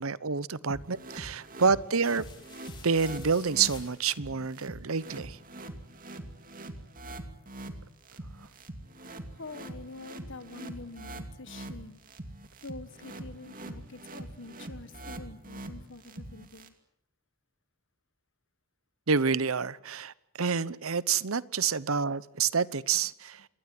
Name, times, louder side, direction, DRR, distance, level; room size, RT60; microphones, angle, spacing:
voice 1, 0.0-2.2 2.8-5.4 19.1-23.4, right 5 dB, 75° right, 0.9 m, -28 dB
sound 1, 0.7-16.7, right 1 dB, 40° right, 2.5 m, -43 dB
sound 2, 2.0-4.4, left 5 dB, 20° left, 4.5 m, -51 dB
voice 2, 9.4-12.0 12.6-16.7, left 3 dB, 60° left, 1.6 m, -46 dB
27.0 x 21.5 x 7.8 m
head